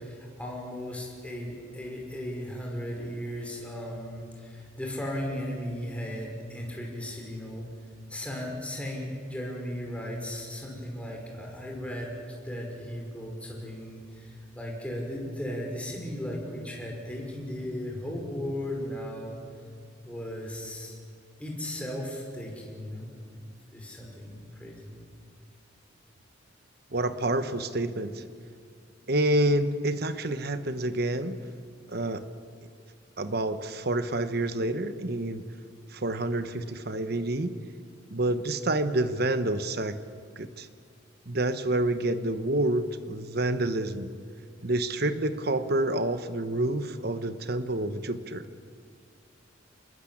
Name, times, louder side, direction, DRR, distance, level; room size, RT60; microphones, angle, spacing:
voice 1, 0.0-7.7 8.1-19.4 20.0-20.9 21.4-23.4 23.7-24.9, equal, 5° left, -1 dB, 5.7 m, -36 dB
voice 2, 26.9-28.2 29.1-31.4 31.9-32.2 33.2-35.4 35.9-37.5 38.1-40.0 40.4-40.7 41.3-44.1 44.6-48.4, right 1 dB, 55° right, 11 dB, 1.2 m, -28 dB
26.5 x 21.0 x 8.7 m, 2.1 s
head